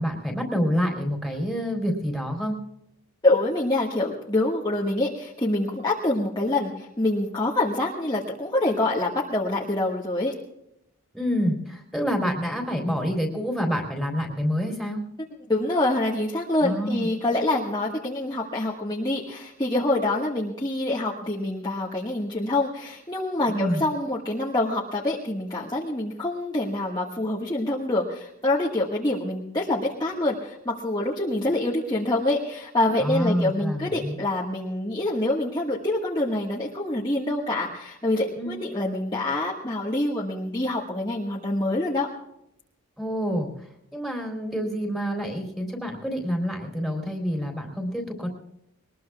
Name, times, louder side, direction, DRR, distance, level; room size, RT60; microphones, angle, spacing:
voice 1, 0.0-2.6 11.1-15.0 16.6-17.1 23.5-23.8 33.0-34.1 38.4-38.6 43.0-43.5 43.9-48.3, equal, ahead, 2 dB, 3.6 m, -27 dB
voice 2, 3.2-10.3 15.5-42.1, left 2 dB, 20° left, -4 dB, 1.7 m, -26 dB
22.0 x 20.5 x 2.4 m, 0.79 s
head